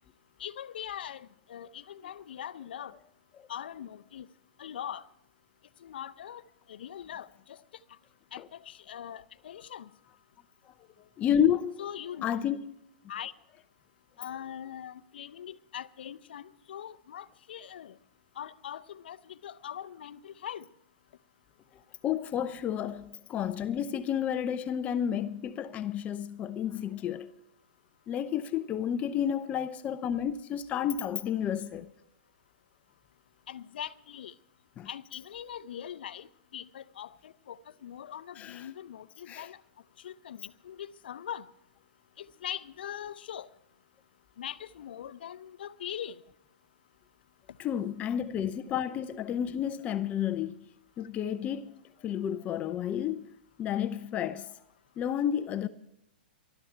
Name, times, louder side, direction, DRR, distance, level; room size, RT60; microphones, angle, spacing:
voice 1, 0.4-2.9 3.5-4.3 4.6-5.0 5.8-6.4 6.7-7.3 8.3-9.9 11.8-12.4 13.1-13.3 14.2-17.9 18.4-20.6 33.5-34.3 34.9-36.3 36.5-39.6 40.0-41.5 42.2-43.5 44.4-46.1, left 9 dB, 70° left, 0.7 m, -41 dB
voice 2, 11.2-12.7 22.0-27.3 28.1-31.9 34.8-34.9 38.3-38.7 39.3-39.5 47.6-50.6 51.0-51.7 52.0-53.3 53.6-54.5 55.0-55.7, left 9 dB, 25° left, 0.6 m, -31 dB
19.5 x 12.5 x 4.5 m
hypercardioid pair, 130°, 6 cm